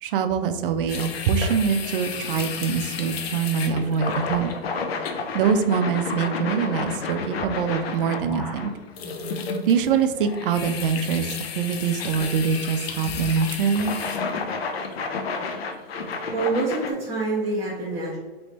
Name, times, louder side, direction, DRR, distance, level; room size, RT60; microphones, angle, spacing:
voice 1, 0.0-4.5 5.3-8.7 9.7-13.9, right 6 dB, 65° right, 8 dB, 0.5 m, -24 dB
sound 1, 0.8-0.9 1.1-1.5 1.8-3.0 3.7-7.6 7.9-10.2 10.5-11.4, left 1 dB, 40° left, 1.1 m, -44 dB
sound 2, 0.9-16.9, left 4 dB, 90° left, 0.6 m, -31 dB
voice 2, 15.9-18.2, right 3 dB, 10° right, -11 dB, 0.9 m, -27 dB
3.1 x 3.1 x 3.0 m, 1.3 s
hypercardioid pair, 150°, 30 cm